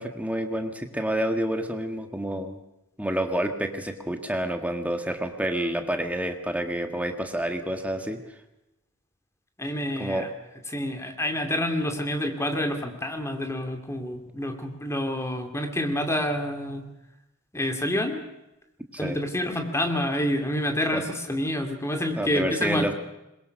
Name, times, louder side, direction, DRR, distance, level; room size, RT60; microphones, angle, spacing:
voice 1, 0.0-2.6 3.0-8.2 10.0-10.3 18.9-19.2 20.9-21.0 22.2-22.9, right 1 dB, 5° right, 5 dB, 1.7 m, -28 dB
voice 2, 9.6-10.3 10.7-16.9 17.5-18.2 19.0-22.9, left 1 dB, 10° left, 5 dB, 2.5 m, -28 dB
22.0 x 21.0 x 6.5 m, 0.92 s
head